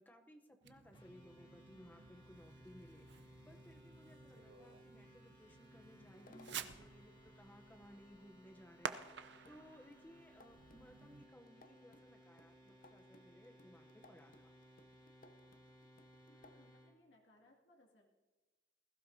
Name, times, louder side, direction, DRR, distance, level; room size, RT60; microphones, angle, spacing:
voice 1, 0.0-14.5, equal, 10° left, 5 dB, 0.8 m, -61 dB
Fireworks, 0.6-11.3, right 6 dB, 65° right, 0.6 m, -52 dB
sound 1, 0.9-17.0, equal, 30° left, 2.0 m, -62 dB
sound 2, 6.1-7.0 8.9-9.0 9.4-16.7, left 1 dB, 50° left, 0.6 m, -65 dB
voice 2, 16.3-18.1, left 1 dB, 85° left, -1 dB, 2.4 m, -68 dB
20.5 x 15.0 x 2.7 m, 1.3 s
head